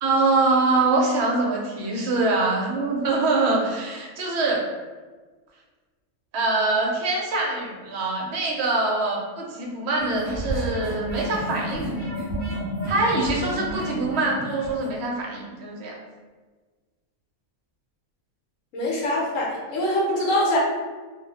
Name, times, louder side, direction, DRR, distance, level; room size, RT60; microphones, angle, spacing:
voice 1, 0.0-4.7 6.3-12.0 12.9-15.9, right 3 dB, 60° right, -2 dB, 0.8 m, -24 dB
sound 1, 10.0-14.9, equal, 10° left, 0.8 m, -31 dB
voice 2, 18.7-20.6, left 1 dB, 65° left, -4 dB, 1.0 m, -23 dB
2.5 x 2.0 x 3.3 m, 1.3 s
omnidirectional pair, 1.5 m